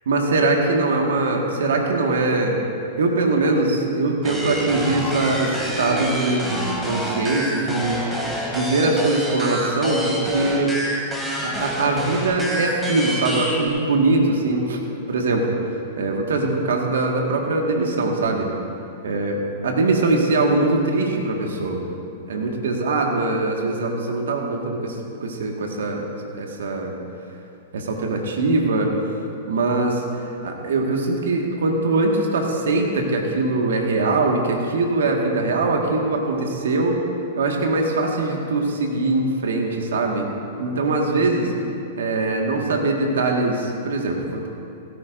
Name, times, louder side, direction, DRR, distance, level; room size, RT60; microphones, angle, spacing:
voice 1, 0.1-2.6 3.0-10.7 11.4-14.8 15.1-15.6 16.0-18.5 19.0-21.9 22.3-26.0 26.3-26.9 27.7-28.9 29.5-30.0 30.4-37.0 37.4-40.3 40.6-41.5 42.0-44.5, right 2 dB, 75° right, 1 dB, 1.7 m, -22 dB
sound 1, 4.2-13.7, equal, 5° right, 2.4 m, -27 dB
16.5 x 14.5 x 2.6 m, 2.6 s
hypercardioid pair, 110°, 0 cm